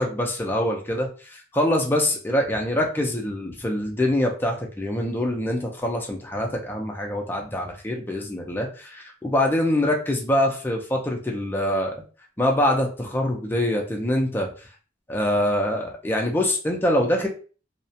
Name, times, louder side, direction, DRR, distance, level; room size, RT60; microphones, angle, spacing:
voice 1, 0.0-12.0 12.4-14.5 15.1-17.3, left 1 dB, 10° left, 0 dB, 0.5 m, -24 dB
2.3 x 2.1 x 2.7 m, 0.37 s
head